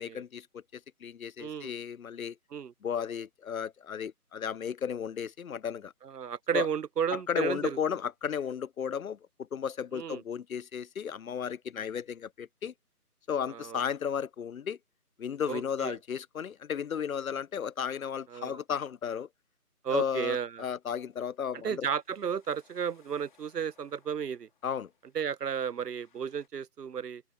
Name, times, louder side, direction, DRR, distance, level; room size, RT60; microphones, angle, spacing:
voice 1, 0.0-2.4 2.8-5.9 6.5-6.7 7.1-12.7 13.3-14.8 15.2-19.3 19.9-21.9 24.6-24.9, left 7 dB, 65° left, 0.5 m, -34 dB
voice 2, 1.4-1.7 2.5-2.7 6.0-7.8 9.9-10.2 13.5-13.8 15.5-16.0 18.3-18.6 19.8-20.6 21.6-24.5 25.1-27.2, right 7 dB, 85° right, 0.7 m, -33 dB
sound 1, 20.8-26.5, left 7 dB, 30° left, 2.9 m, -68 dB
open air
figure-of-eight pair, 155°, 46 cm